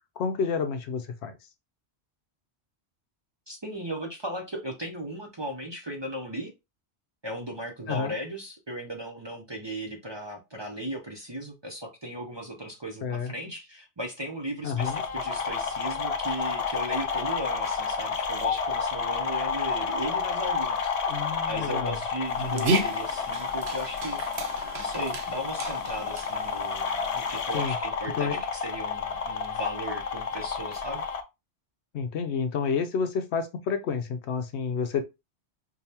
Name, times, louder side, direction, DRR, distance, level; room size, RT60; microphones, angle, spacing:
voice 1, 0.2-1.3 7.9-8.1 13.0-13.3 14.6-15.0 21.1-22.0 22.4-22.7 27.5-27.7 28.2-28.4 31.9-35.0, left 6 dB, 75° left, 0.9 m, -29 dB
voice 2, 3.5-6.5 7.2-20.9 21.5-24.2 24.8-31.0, right 1 dB, 30° right, 0.6 m, -36 dB
sound 1, 14.8-31.2, left 5 dB, 55° left, 0.4 m, -30 dB
Dog, 22.3-27.6, right 2 dB, 70° right, 1.0 m, -34 dB
5.1 x 2.3 x 2.8 m
omnidirectional pair, 1.2 m